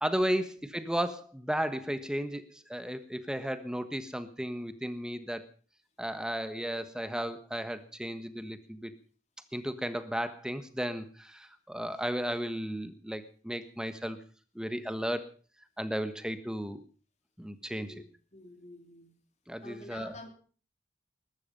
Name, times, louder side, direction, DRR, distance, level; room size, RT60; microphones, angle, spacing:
voice 1, 0.0-5.4 6.0-8.9 9.5-14.2 14.5-15.3 15.8-16.8 17.4-17.9 19.5-20.1, equal, 5° right, 11 dB, 1.3 m, -34 dB
voice 2, 17.7-18.0 18.3-19.1 19.6-20.3, left 2 dB, 35° left, 5 dB, 3.3 m, -48 dB
20.0 x 13.0 x 5.3 m, 0.40 s
head